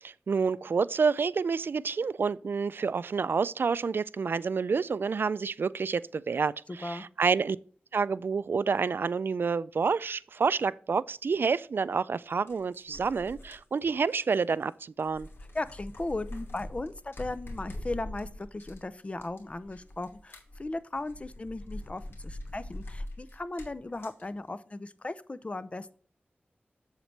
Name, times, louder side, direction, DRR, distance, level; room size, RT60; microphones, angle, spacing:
voice 1, 0.0-7.6 7.9-15.3, right 5 dB, 70° right, 0.3 m, -28 dB
sound 1, 11.3-11.4 12.3-14.7 15.0-24.2, left 1 dB, 85° left, 2.7 m, -43 dB
voice 2, 15.5-26.0, left 2 dB, 35° left, 0.5 m, -37 dB
7.9 x 7.4 x 3.3 m
wide cardioid pair, 95°, 4 cm